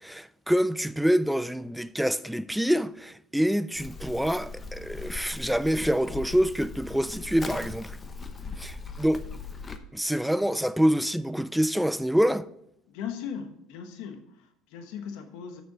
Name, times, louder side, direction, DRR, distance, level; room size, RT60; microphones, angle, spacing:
voice 1, 0.0-8.0 8.6-9.2 9.9-12.5, equal, ahead, 0.4 m, -26 dB
Livestock farm animals working animals, 3.7-9.8, left 3 dB, 20° left, 0.8 m, -39 dB
voice 2, 12.9-15.6, left 7 dB, 80° left, 1.1 m, -39 dB
6.8 x 6.5 x 6.0 m
cardioid pair, 125°, 0 cm